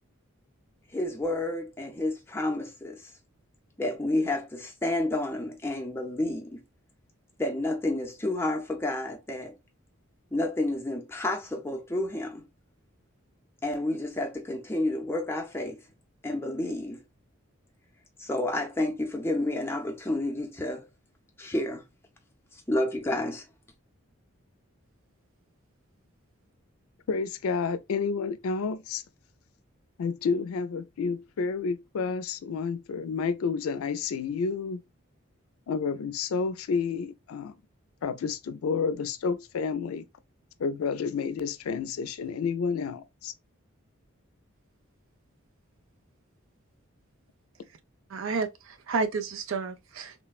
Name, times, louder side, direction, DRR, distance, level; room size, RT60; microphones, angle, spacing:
voice 1, 0.9-3.1 3.8-6.6 7.4-9.5 10.3-12.4 13.6-15.8 16.2-17.0 18.2-20.9 21.4-21.8 22.5-23.5, left 1 dB, 10° left, 0.5 m, -30 dB
voice 2, 27.1-29.0 30.0-34.8 35.7-37.5 38.0-40.0 40.6-43.3, left 5 dB, 90° left, 0.4 m, -30 dB
voice 3, 48.1-50.1, right 4 dB, 75° right, 0.5 m, -31 dB
3.2 x 2.1 x 2.3 m
head